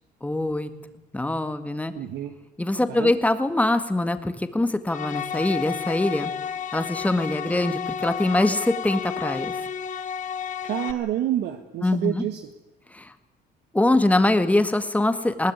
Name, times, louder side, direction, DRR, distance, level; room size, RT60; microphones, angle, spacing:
voice 1, 0.2-0.7 1.1-1.9 2.6-6.3 6.7-9.6 11.8-12.2 12.9-13.1 13.7-15.5, left 2 dB, 10° left, 10 dB, 1.8 m, -23 dB
voice 2, 1.9-2.3 2.9-3.1 10.6-12.4, right 12 dB, 75° right, 6 dB, 1.7 m, -28 dB
sound 1, 4.9-10.9, left 7 dB, 50° left, 1.6 m, -31 dB
21.0 x 18.5 x 9.6 m, 0.97 s
cardioid pair, 110°, 17 cm